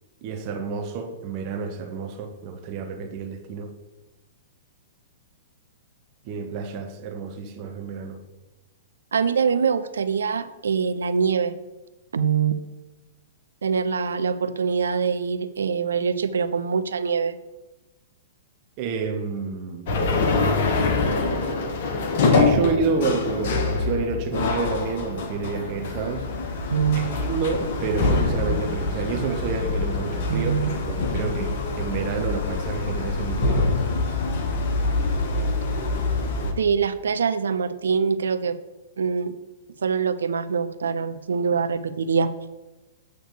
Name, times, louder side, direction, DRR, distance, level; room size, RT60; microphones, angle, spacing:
voice 1, 0.2-3.7 6.2-8.2 18.8-20.0 22.2-26.3 26.9-30.5 30.9-33.8, right 5 dB, 40° right, 0.8 m, -29 dB
voice 2, 9.1-11.5 12.1-12.6 13.6-17.4 26.7-27.1 30.3-30.7 36.6-38.6 39.0-39.3 39.8-42.3, right 6 dB, 75° right, 0.5 m, -24 dB
sound 1, 19.9-36.5, left 3 dB, 55° left, 1.2 m, -25 dB
8.1 x 3.2 x 6.3 m
figure-of-eight pair, 110°, 0 cm